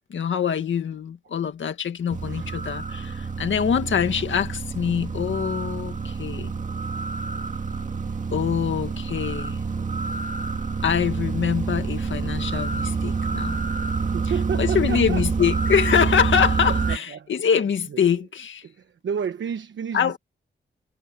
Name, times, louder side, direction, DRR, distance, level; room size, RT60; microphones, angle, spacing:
voice 1, 0.1-6.5 8.3-9.6 10.8-13.6 14.6-18.6 19.9-20.2, left 7 dB, 85° left, 1.9 m, -24 dB
sound 1, 2.1-17.0, right 4 dB, 40° right, 1.9 m, -27 dB
voice 2, 2.2-2.5 7.7-7.9 14.0-15.3 16.7-17.3 17.9-18.2 18.6-20.2, right 7 dB, 80° right, 1.1 m, -32 dB
wide cardioid pair, 135°, 19 cm